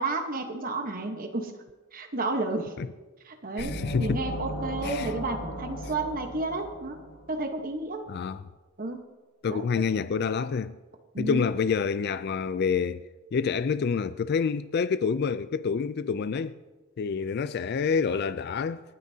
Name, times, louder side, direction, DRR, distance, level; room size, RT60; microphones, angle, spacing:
voice 1, 0.0-1.5 1.9-2.7 3.2-7.0 7.3-8.0 8.8-9.0 9.5-9.7 11.1-11.4, right 2 dB, 40° right, 1.1 m, -31 dB
sound 1, 3.6-7.3, right 1 dB, 65° left, 5.1 m, -36 dB
voice 2, 3.6-4.2 4.8-5.1 8.1-8.4 9.4-10.7 11.2-13.0 13.3-16.5 17.0-18.8, left 5 dB, 50° left, 0.3 m, -27 dB
27.0 x 9.7 x 2.8 m
head